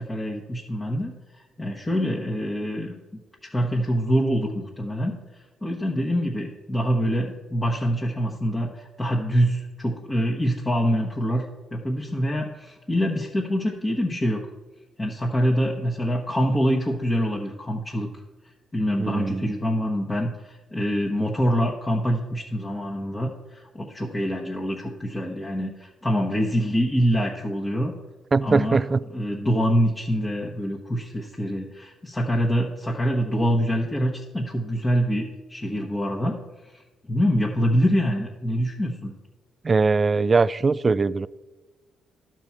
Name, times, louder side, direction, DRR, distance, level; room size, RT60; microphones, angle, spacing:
voice 1, 0.0-3.0 3.4-14.5 15.0-18.1 18.7-27.9 28.4-28.8 29.1-36.4 36.6-36.8 37.1-39.1, equal, 20° left, 1.1 m, -25 dB
voice 2, 19.0-19.5 28.3-29.0 39.6-41.3, right 4 dB, 30° right, 0.3 m, -21 dB
11.5 x 4.5 x 7.2 m
cardioid pair, 90°, 0 cm